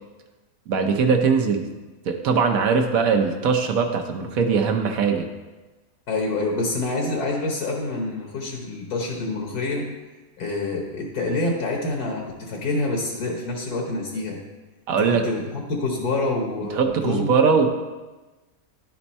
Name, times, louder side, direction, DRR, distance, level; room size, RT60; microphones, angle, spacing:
voice 1, 0.7-1.6 2.1-5.3 14.9-15.2 16.7-17.7, right 5 dB, 65° right, 4 dB, 1.1 m, -21 dB
voice 2, 6.1-9.9 10.4-14.4 15.0-17.3, left 2 dB, 75° left, 0 dB, 1.5 m, -27 dB
11.0 x 4.4 x 4.1 m, 1.2 s
omnidirectional pair, 1.7 m